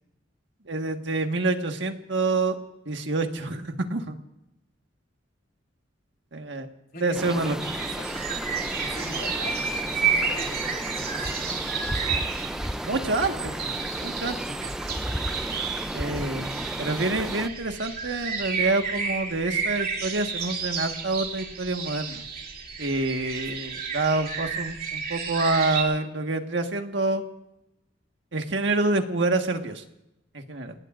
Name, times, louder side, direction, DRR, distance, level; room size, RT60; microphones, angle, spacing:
voice 1, 0.7-2.5 2.8-4.2 6.3-6.7 7.0-7.6 12.8-14.6 15.9-22.2 22.8-27.2 28.3-29.8 30.3-30.7, right 2 dB, 70° right, 5 dB, 1.6 m, -27 dB
sound 1, 7.1-17.5, equal, 5° right, 0.5 m, -33 dB
voice 2, 7.4-8.1 8.9-11.6 23.5-23.7, left 2 dB, 55° left, 1 dB, 3.7 m, -41 dB
sound 2, 7.6-25.8, right 6 dB, 50° right, 2.9 m, -31 dB
29.5 x 19.0 x 2.6 m, 0.89 s
head